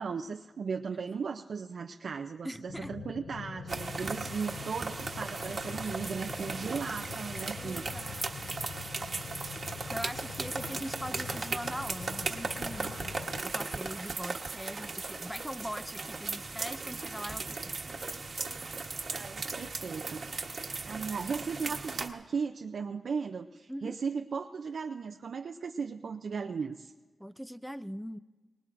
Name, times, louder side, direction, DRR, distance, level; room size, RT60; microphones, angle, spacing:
voice 1, 0.0-8.2 19.1-20.2 20.8-26.9, right 5 dB, 70° right, 4 dB, 0.5 m, -37 dB
voice 2, 2.4-2.9 7.6-8.2 9.9-17.8 23.7-24.0 27.2-28.2, equal, ahead, 11 dB, 0.4 m, -41 dB
sound 1, 2.7-13.4, left 6 dB, 85° left, 0.5 m, -44 dB
sound 2, 3.7-22.1, right 4 dB, 50° right, 1.1 m, -37 dB
23.5 x 19.0 x 2.6 m, 1.3 s
cardioid pair, 85°, 0 cm